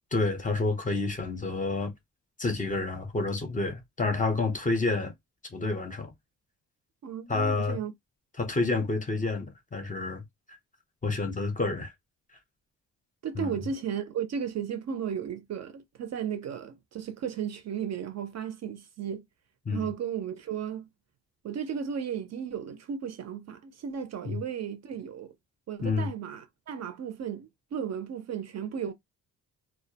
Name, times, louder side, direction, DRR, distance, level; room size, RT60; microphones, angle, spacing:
voice 1, 0.1-1.9 2.4-5.1 5.5-6.1 7.3-7.8 8.4-10.2 10.5-10.6 11.0-11.9 13.4-13.6 19.7-19.9 24.2-24.4 25.8-26.1, left 3 dB, 25° left, 0.5 m, -29 dB
voice 2, 7.0-7.9 13.2-19.2 19.7-20.9 21.4-25.3 25.7-28.9, right 8 dB, 50° right, 0.5 m, -35 dB
2.3 x 2.1 x 2.7 m
wide cardioid pair, 155°, 35 cm